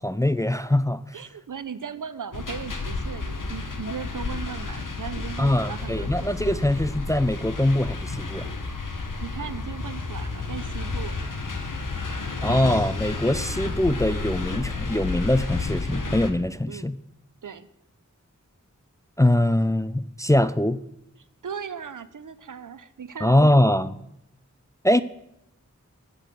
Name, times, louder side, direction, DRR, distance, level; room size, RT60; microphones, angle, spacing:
voice 1, 0.0-1.2 5.4-8.5 12.4-17.0 19.2-20.8 23.2-23.9 24.8-25.0, left 1 dB, 10° left, 14 dB, 0.4 m, -22 dB
voice 2, 1.1-6.6 9.2-11.2 16.7-16.9 17.4-17.7 21.4-23.5, right 7 dB, 80° right, 14 dB, 0.6 m, -37 dB
sound 1, 2.3-16.3, left 3 dB, 85° left, 1.0 m, -31 dB
8.2 x 6.1 x 7.5 m, 0.82 s
wide cardioid pair, 45°, 31 cm